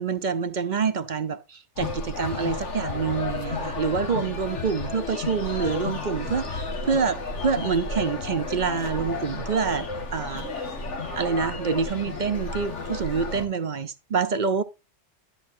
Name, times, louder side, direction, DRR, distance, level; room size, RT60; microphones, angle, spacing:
voice 1, 0.0-10.5 11.2-14.6, right 5 dB, 50° right, 0.7 m, -27 dB
sound 1, 1.8-13.4, left 3 dB, 85° left, 1.9 m, -32 dB
11.5 x 9.3 x 2.6 m
omnidirectional pair, 1.2 m